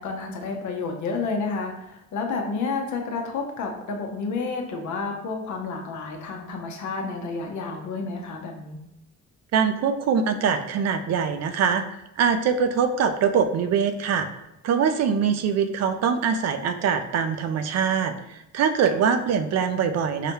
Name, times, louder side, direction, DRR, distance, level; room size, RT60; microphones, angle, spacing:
voice 1, 0.0-8.8, left 4 dB, 70° left, 2 dB, 0.8 m, -30 dB
voice 2, 9.5-11.8 12.2-14.3 14.6-20.3, right 6 dB, 60° right, 9 dB, 0.4 m, -23 dB
4.9 x 2.2 x 2.9 m, 0.87 s
cardioid pair, 90°, 30 cm